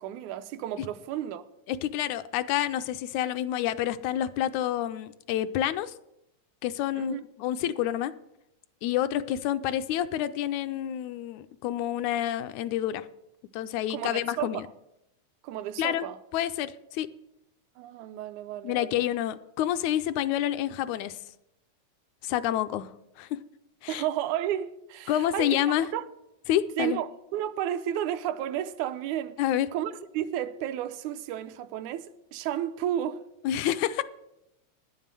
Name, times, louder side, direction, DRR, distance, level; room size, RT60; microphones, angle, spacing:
voice 1, 0.0-1.4 7.0-7.2 13.9-14.6 15.4-16.2 17.8-19.0 23.9-25.6 25.9-26.1 26.8-29.4 29.7-33.2, right 11 dB, 85° right, 2.0 m, -32 dB
voice 2, 1.7-5.9 6.6-8.1 8.8-13.1 13.5-14.7 15.8-16.1 16.3-17.1 18.6-21.2 22.2-22.9 23.2-23.4 23.8-24.0 25.1-25.9 26.5-27.0 29.4-29.7 33.4-34.0, left 12 dB, 80° left, 1.9 m, -28 dB
10.0 x 7.3 x 7.5 m
omnidirectional pair, 3.3 m